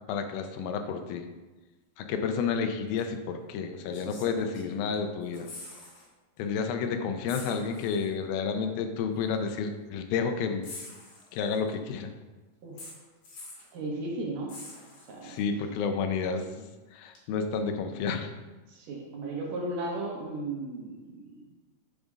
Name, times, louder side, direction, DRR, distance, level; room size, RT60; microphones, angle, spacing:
voice 1, 0.1-1.2 2.0-5.5 6.4-10.7 11.3-12.1 15.2-16.7 16.9-18.3, left 5 dB, 85° left, 6 dB, 2.5 m, -30 dB
sound 1, 3.0-3.1 3.9-5.0 5.2-6.1 6.4-6.5 7.3-8.1 9.2-9.3 10.6-11.7 12.8-13.7 14.5-15.4 17.2-17.3, left 2 dB, 55° left, 2.5 m, -45 dB
voice 2, 13.7-14.7 15.1-15.4 18.7-21.4, right 2 dB, 70° right, -2 dB, 2.7 m, -35 dB
8.8 x 5.3 x 3.6 m, 1.2 s
omnidirectional pair, 4.1 m